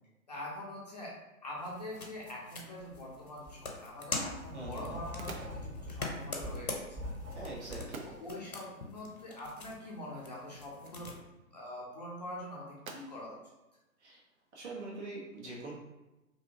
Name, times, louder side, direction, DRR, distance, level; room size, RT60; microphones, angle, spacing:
voice 1, 0.3-1.2 1.4-7.1 8.0-11.1 11.5-13.4, left 1 dB, 30° left, -4 dB, 0.4 m, -44 dB
sound 1, 1.6-11.2, left 2 dB, 85° left, 0.8 m, -44 dB
Writing, 2.8-3.0 3.4-7.9, left 1 dB, 20° right, 1.1 m, -43 dB
sound 2, 3.0-14.7, right 3 dB, 75° right, 0.6 m, -55 dB
voice 2, 4.5-5.0 7.3-8.0 14.0-14.2 14.5-15.7, right 2 dB, 55° right, -4 dB, 1.2 m, -43 dB
2.8 x 2.6 x 2.7 m, 1.0 s
figure-of-eight pair, 120°, 42 cm